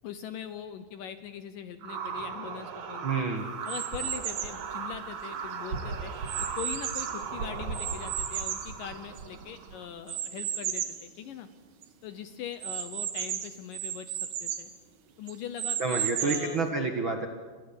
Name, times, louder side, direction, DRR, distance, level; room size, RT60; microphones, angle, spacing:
voice 1, 0.0-3.3 3.7-6.1 6.6-11.5 12.0-14.7 15.2-16.6, left 9 dB, 70° left, 10 dB, 2.3 m, -41 dB
sound 1, 1.8-9.9, right 5 dB, 60° right, 3.7 m, -37 dB
voice 2, 3.0-3.5 15.8-17.3, right 4 dB, 45° right, 3 dB, 1.7 m, -29 dB
sound 2, 3.7-4.6 5.3-7.3 7.7-9.4 10.1-11.0 11.5-11.6 11.8-11.9 12.6-14.7 15.3-16.6, right 10 dB, 85° right, 3.8 m, -34 dB
29.5 x 25.5 x 7.2 m, 1.4 s
omnidirectional pair, 4.7 m